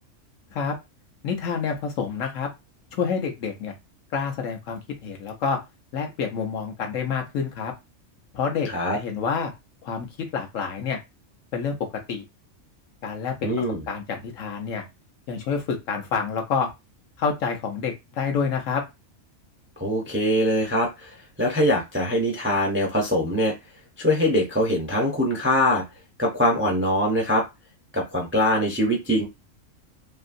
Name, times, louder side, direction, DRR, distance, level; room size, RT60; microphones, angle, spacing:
voice 1, 1.2-2.5 2.9-3.7 4.1-5.6 5.9-7.7 8.3-9.5 9.8-10.1 10.3-11.0 11.5-11.8 12.1-12.2 13.0-13.5 13.9-14.8 15.3-16.7 17.2-18.8, left 6 dB, 75° left, 3 dB, 1.1 m, -28 dB
voice 2, 13.4-13.8 19.8-23.5 24.0-25.8 26.2-27.4 27.9-29.3, left 1 dB, 15° right, -1 dB, 0.4 m, -23 dB
3.0 x 2.6 x 2.5 m, 0.23 s
omnidirectional pair, 1.3 m